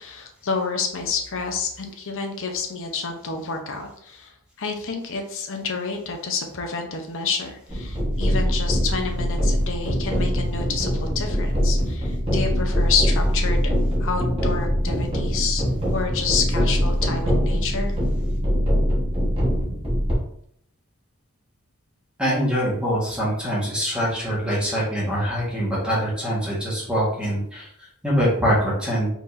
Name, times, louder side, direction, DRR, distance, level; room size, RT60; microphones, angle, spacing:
voice 1, 0.0-4.3 4.6-13.7 14.0-15.6 15.9-18.0, left 5 dB, 60° left, 3 dB, 0.8 m, -29 dB
sound 1, 7.7-20.1, equal, 25° right, 1.4 m, -23 dB
voice 2, 22.2-29.1, equal, 5° right, -7 dB, 1.6 m, -24 dB
4.5 x 3.9 x 2.7 m, 0.68 s
head